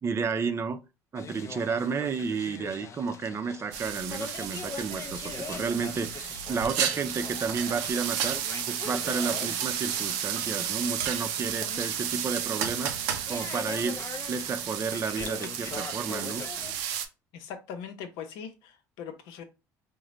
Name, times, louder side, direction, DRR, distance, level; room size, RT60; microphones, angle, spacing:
voice 1, 0.0-0.8 1.1-8.4 8.7-12.9 13.3-14.0 14.3-16.4, right 5 dB, 35° right, 0.5 m, -31 dB
sound 1, 1.1-16.8, left 5 dB, 40° left, 0.5 m, -43 dB
sound 2, 3.7-17.1, right 9 dB, 80° right, 0.5 m, -33 dB
voice 2, 17.3-19.4, left 7 dB, 75° left, 0.7 m, -41 dB
3.8 x 2.2 x 3.0 m
supercardioid pair, 80°, 8 cm